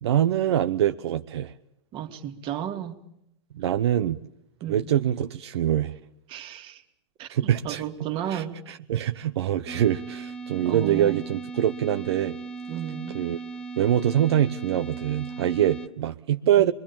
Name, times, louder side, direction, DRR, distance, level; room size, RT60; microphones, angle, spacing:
voice 1, 0.0-1.5 3.5-4.2 4.7-5.9 7.3-7.8 8.3-12.4 13.1-13.4 13.8-16.7, right 11 dB, 80° right, 1.0 m, -24 dB
voice 2, 1.9-3.0 4.6-4.9 6.3-6.8 7.2-8.6 10.6-11.2 12.7-13.2 16.4-16.7, right 10 dB, 40° right, 2.5 m, -34 dB
sound 1, 9.7-15.9, right 4 dB, 10° left, 1.1 m, -38 dB
25.0 x 22.5 x 7.3 m
hypercardioid pair, 130°, 14 cm